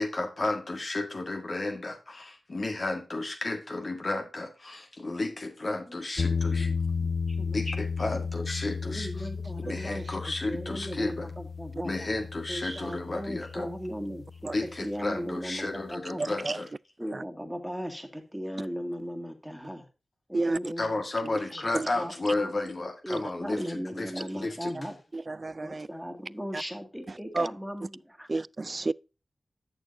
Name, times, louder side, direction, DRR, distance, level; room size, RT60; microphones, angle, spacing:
voice 1, 0.0-6.7 7.5-9.3 9.6-11.3 11.8-13.7 14.5-16.7 20.8-24.9, left 2 dB, 55° left, 1.7 m, -33 dB
voice 2, 6.0-6.7 7.0-7.6 8.8-10.1 10.5-11.9 12.5-16.4 17.0-19.9 20.3-21.4 22.0-22.5 23.0-25.0 25.6-28.4, equal, ahead, 2.1 m, -37 dB
sound 1, 6.2-15.1, left 5 dB, 70° left, 0.3 m, -33 dB
voice 3, 25.1-25.9 27.4-27.5 28.3-28.9, right 3 dB, 45° right, 0.3 m, -29 dB
11.0 x 6.7 x 2.7 m
cardioid pair, 45°, 0 cm